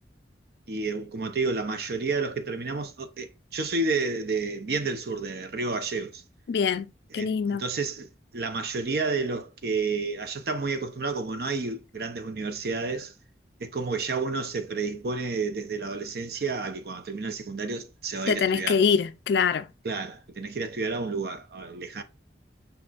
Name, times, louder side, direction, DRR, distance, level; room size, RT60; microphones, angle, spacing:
voice 1, 0.7-6.2 7.1-8.1 8.3-13.1 13.6-18.8 19.8-22.0, right 4 dB, 55° right, 0.6 m, -30 dB
voice 2, 6.5-7.6 18.3-19.7, left 6 dB, 65° left, 0.3 m, -24 dB
5.2 x 4.2 x 2.4 m
head